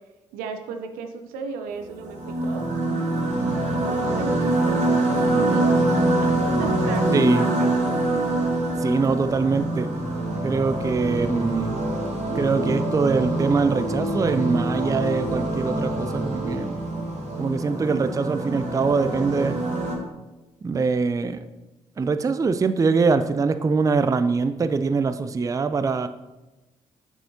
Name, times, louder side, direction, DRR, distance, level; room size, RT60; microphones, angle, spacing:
voice 1, 0.3-2.7 3.6-6.1 6.6-7.9, right 5 dB, 75° right, 7 dB, 0.6 m, -36 dB
sound 1, 1.8-19.9, right 1 dB, 50° right, 1.9 m, -25 dB
voice 2, 7.1-7.4 8.8-9.9 10.4-11.8 12.3-16.8 17.4-19.6 20.6-21.4 22.0-26.1, right 4 dB, 20° right, 11 dB, 0.4 m, -23 dB
7.3 x 4.8 x 2.8 m, 1.1 s
hypercardioid pair, 40°, 15 cm